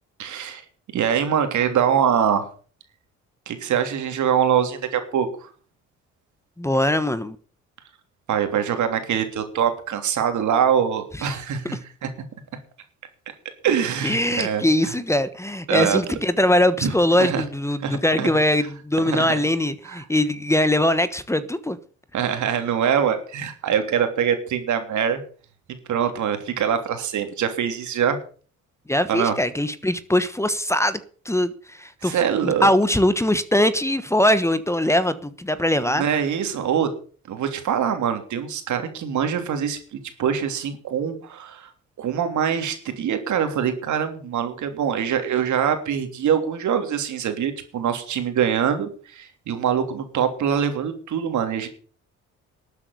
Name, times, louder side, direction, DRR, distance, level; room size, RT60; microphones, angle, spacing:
voice 1, 0.2-0.6 0.9-2.5 3.5-5.5 8.3-12.1 13.6-14.9 15.7-16.0 16.8-16.9 17.2-17.4 17.8-18.3 19.0-19.3 19.8-20.0 22.1-25.2 25.9-28.2 29.1-29.3 32.0-32.7 35.9-36.9 37.3-41.7 42.0-51.7, right 8 dB, 75° right, 3.2 m, -24 dB
voice 2, 6.6-7.4 11.2-11.3 14.0-21.8 28.9-31.0 31.2-32.2 32.4-36.0, left 1 dB, 10° left, 1.2 m, -21 dB
13.0 x 8.2 x 8.3 m
cardioid pair, 90°, 30 cm